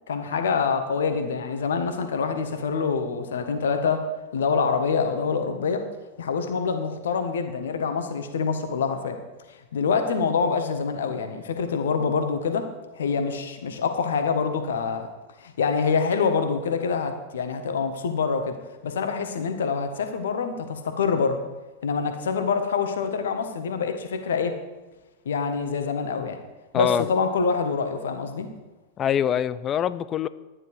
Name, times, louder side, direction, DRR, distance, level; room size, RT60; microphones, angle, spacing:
voice 1, 0.1-5.8 6.2-9.2 9.5-12.7 12.9-15.1 15.4-18.6 18.8-21.4 21.8-24.6 25.2-26.4 26.7-28.5, left 5 dB, 65° left, 7 dB, 1.3 m, -26 dB
voice 2, 26.7-27.0 29.0-30.3, left 9 dB, 30° left, 16 dB, 0.5 m, -24 dB
12.0 x 9.8 x 4.8 m, 1.2 s
figure-of-eight pair, 90°, 0 cm